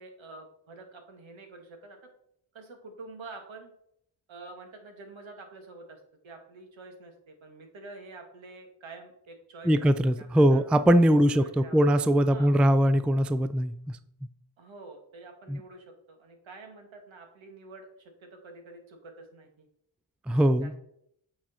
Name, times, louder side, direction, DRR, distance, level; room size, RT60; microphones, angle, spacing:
voice 1, 0.0-2.0 2.5-3.7 4.3-9.9 10.2-10.6 11.2-11.9 12.3-12.6 14.6-19.7 20.6-20.7, right 3 dB, 75° right, 4 dB, 1.8 m, -47 dB
voice 2, 9.7-14.0 15.5-15.6 20.3-20.7, equal, 5° right, 12 dB, 0.3 m, -22 dB
8.7 x 4.9 x 4.1 m, 0.71 s
cardioid pair, 85°, 46 cm